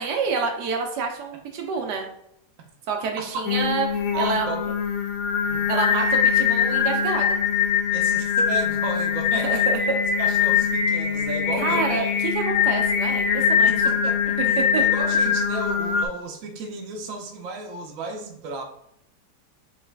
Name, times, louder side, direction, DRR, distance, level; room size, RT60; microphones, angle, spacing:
voice 1, 0.0-2.1 2.9-4.5 5.7-7.4 9.3-10.0 11.6-13.7 14.4-14.8, right 5 dB, 75° right, 3 dB, 1.2 m, -27 dB
voice 2, 3.2-3.5 4.1-4.7 5.4-5.6 7.9-9.7 10.2-12.1 13.7-18.6, right 3 dB, 60° right, 3 dB, 0.9 m, -34 dB
Singing, 3.5-16.1, left 7 dB, 70° left, 0.8 m, -22 dB
4.0 x 3.1 x 3.3 m, 0.75 s
omnidirectional pair, 1.9 m